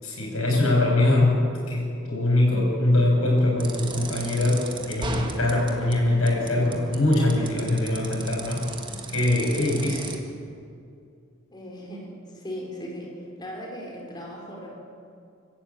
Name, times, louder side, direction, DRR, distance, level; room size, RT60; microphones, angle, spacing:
voice 1, 0.0-8.7 9.1-10.1, left 1 dB, 85° left, -2 dB, 7.1 m, -22 dB
sound 1, 3.6-10.2, right 3 dB, 25° right, 1.7 m, -37 dB
voice 2, 11.5-13.1 13.4-14.7, equal, 20° left, -2 dB, 3.9 m, -38 dB
24.0 x 13.0 x 8.7 m, 2.4 s
head